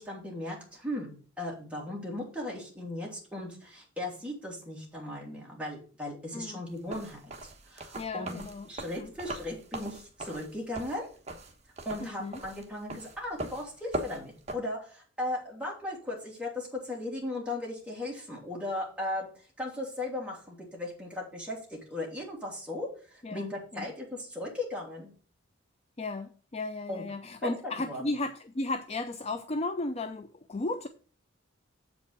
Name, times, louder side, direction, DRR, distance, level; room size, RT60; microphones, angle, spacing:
voice 1, 0.0-8.4 8.6-11.1 11.8-25.1 26.9-27.0 27.4-28.1, left 1 dB, 5° right, -3 dB, 3.0 m, -37 dB
sound 1, 6.8-14.5, right 1 dB, 30° right, 1.2 m, -40 dB
voice 2, 8.0-8.7 9.0-9.1 12.0-12.4 23.2-23.9 26.0-30.9, left 2 dB, 30° left, 9 dB, 0.5 m, -35 dB
7.8 x 5.2 x 6.4 m, 0.40 s
head